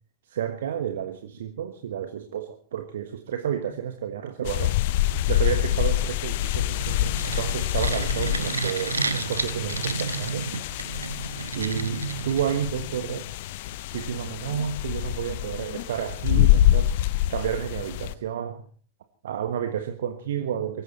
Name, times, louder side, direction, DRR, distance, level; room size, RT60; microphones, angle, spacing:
voice 1, 0.3-4.8 5.3-10.6 11.5-13.3 13.9-16.9 17.3-18.6 19.2-20.8, right 9 dB, 60° right, 7 dB, 1.4 m, -31 dB
sound 1, 4.4-18.1, left 14 dB, 50° left, 0.7 m, -26 dB
sound 2, 6.5-12.8, right 4 dB, 80° right, 1.3 m, -31 dB
23.5 x 14.5 x 4.2 m, 0.40 s
figure-of-eight pair, 90°, 0 cm